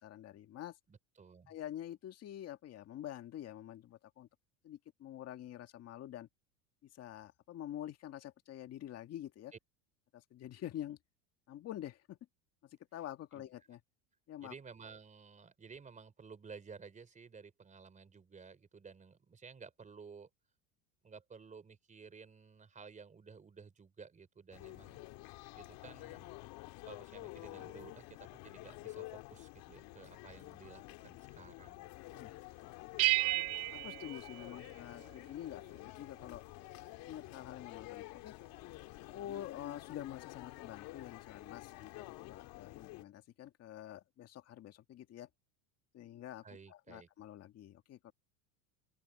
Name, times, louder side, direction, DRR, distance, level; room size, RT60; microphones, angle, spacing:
voice 1, 0.0-0.8 1.5-4.3 4.6-6.3 6.8-9.5 10.1-11.0 11.5-12.2 12.6-13.8 14.3-14.5 32.1-32.4 32.8-32.9 33.7-36.4 37.1-38.3 39.1-45.3 45.9-48.1, left 12 dB, 35° left, 1.9 m, -47 dB
voice 2, 0.9-1.5 9.5-9.6 13.3-13.5 14.4-20.3 21.0-25.0 25.6-26.3 26.8-32.3 46.4-47.1, right 5 dB, 20° right, 3.8 m, -54 dB
sound 1, 24.5-43.0, left 21 dB, 60° left, 2.2 m, -50 dB
sound 2, 33.0-35.2, right 20 dB, 40° right, 0.4 m, -33 dB
open air
supercardioid pair, 130°, 41 cm